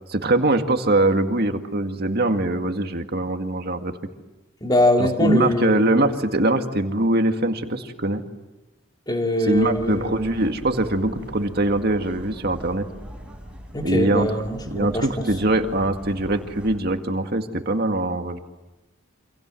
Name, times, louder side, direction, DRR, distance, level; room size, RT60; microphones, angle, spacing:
voice 1, 0.1-3.9 5.0-8.2 9.5-12.9 13.8-14.3 14.7-18.4, right 2 dB, 50° right, 6 dB, 2.0 m, -22 dB
voice 2, 4.6-5.9 9.1-10.3 13.7-15.3, left 1 dB, 20° left, 3 dB, 2.6 m, -23 dB
sound 1, 9.5-16.8, equal, 5° right, 6.3 m, -41 dB
28.5 x 27.0 x 7.7 m, 1.0 s
head